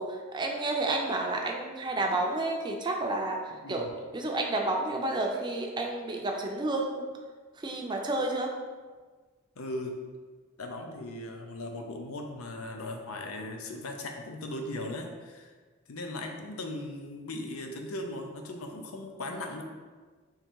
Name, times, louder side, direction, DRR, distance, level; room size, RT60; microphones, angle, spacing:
voice 1, 0.0-3.8 4.1-7.1 7.6-8.5, right 2 dB, 20° right, 1 dB, 0.5 m, -30 dB
voice 2, 3.5-3.9 9.6-9.9 10.6-15.5 15.9-19.6, left 1 dB, 85° left, 3 dB, 0.6 m, -38 dB
3.7 x 3.1 x 4.5 m, 1.4 s
head